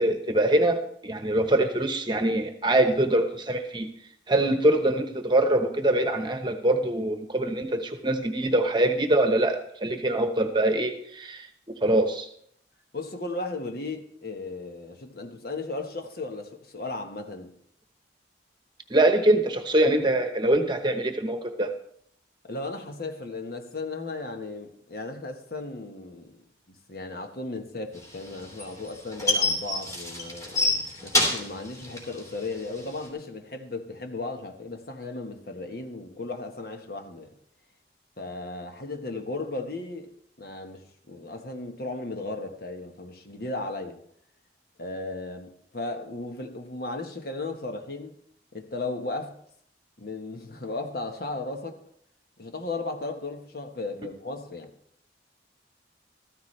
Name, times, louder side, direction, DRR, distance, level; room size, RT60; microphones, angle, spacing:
voice 1, 0.0-3.9 4.3-11.5 11.8-12.3 18.9-21.7, right 1 dB, 25° right, 6 dB, 1.1 m, -23 dB
voice 2, 12.9-17.5 22.4-26.4 26.9-37.3 38.2-40.1 40.4-44.0 44.8-48.1 48.5-49.4 50.0-51.8 52.4-54.7, left 2 dB, 55° left, 5 dB, 1.3 m, -35 dB
sound 1, 28.0-33.1, left 2 dB, 20° left, 2.9 m, -27 dB
14.0 x 14.0 x 3.3 m, 0.67 s
head